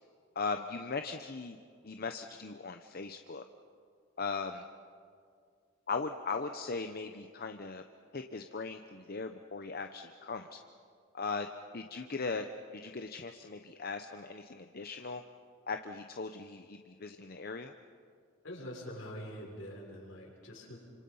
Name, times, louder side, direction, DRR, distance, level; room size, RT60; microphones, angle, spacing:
voice 1, 0.3-1.6 1.8-3.5 4.2-4.7 5.9-7.8 8.1-10.6 11.1-11.5 11.7-12.5 12.7-15.2 15.7-17.7, left 4 dB, 50° left, 6 dB, 0.8 m, -38 dB
voice 2, 18.4-20.8, equal, 75° left, -3 dB, 6.4 m, -44 dB
29.0 x 26.5 x 5.6 m, 2.2 s
head